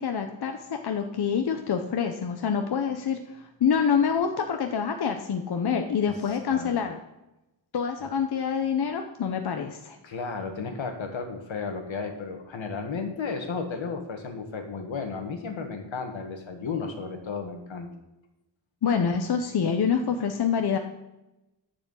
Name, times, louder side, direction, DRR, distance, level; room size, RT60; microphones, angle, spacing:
voice 1, 0.0-7.0 7.7-10.0 18.8-20.8, left 7 dB, 55° left, 5 dB, 0.8 m, -26 dB
voice 2, 10.0-17.9, left 4 dB, 80° left, 5 dB, 1.7 m, -33 dB
11.0 x 5.0 x 7.9 m, 0.95 s
wide cardioid pair, 165°, 45 cm